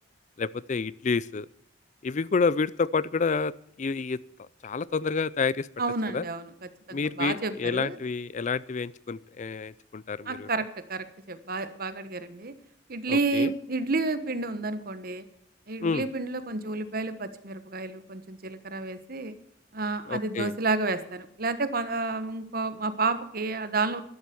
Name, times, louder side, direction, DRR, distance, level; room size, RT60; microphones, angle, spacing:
voice 1, 0.4-1.5 2.0-3.5 3.8-4.2 4.6-5.7 6.1-6.2 6.9-10.5 13.1-13.5 15.8-16.1 20.1-20.5, left 4 dB, 40° left, 20 dB, 0.4 m, -28 dB
voice 2, 5.8-8.0 10.3-12.5 12.9-15.2 15.7-19.3 19.7-24.0, right 3 dB, 50° right, 12 dB, 1.3 m, -30 dB
12.0 x 11.5 x 6.9 m, 0.71 s
head